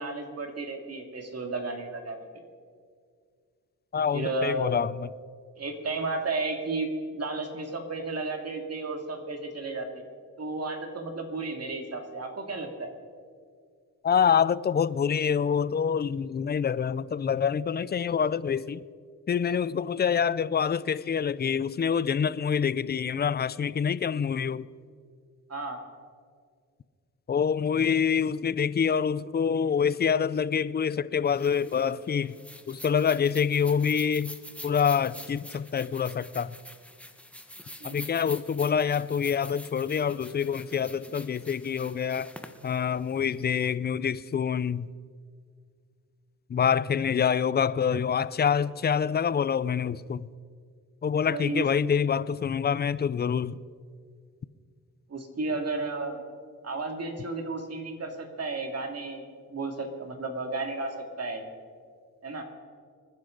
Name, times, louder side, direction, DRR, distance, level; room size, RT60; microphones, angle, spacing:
voice 1, 0.0-2.3 4.1-4.7 5.6-10.1 10.4-12.9 25.5-25.8 37.8-38.0 51.3-51.7 55.1-56.2 56.6-59.2 59.5-61.5 62.2-62.4, right 3 dB, 45° right, 2.3 m, -33 dB
voice 2, 3.9-5.1 14.0-18.8 19.3-24.7 27.3-32.3 32.7-34.3 34.6-36.6 37.8-42.3 42.6-44.9 46.5-50.3 51.0-53.6, left 7 dB, 30° left, 0.4 m, -26 dB
sound 1, 31.2-43.7, left 1 dB, 5° left, 1.1 m, -46 dB
26.0 x 10.5 x 3.9 m
cardioid pair, 80°, 34 cm